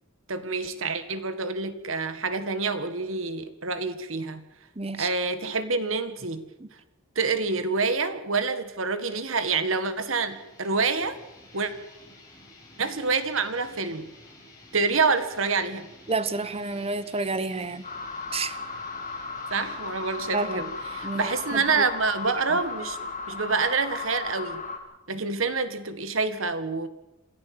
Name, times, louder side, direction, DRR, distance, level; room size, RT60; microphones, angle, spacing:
voice 1, 0.3-4.5 5.0-6.5 7.2-11.2 11.5-11.7 12.8-14.1 14.7-15.9 19.5-24.6 25.1-26.9, right 4 dB, 70° right, 11 dB, 1.9 m, -27 dB
voice 2, 4.8-5.1 6.6-6.7 16.1-17.9 18.3-18.6 20.3-20.7 21.0-21.8 23.3-23.4, right 3 dB, 30° right, 14 dB, 1.1 m, -30 dB
sound 1, 9.5-24.9, left 1 dB, 20° left, 7.2 m, -52 dB
sound 2, 17.8-24.8, left 4 dB, 40° left, 2.9 m, -35 dB
27.0 x 14.0 x 7.8 m, 0.94 s
head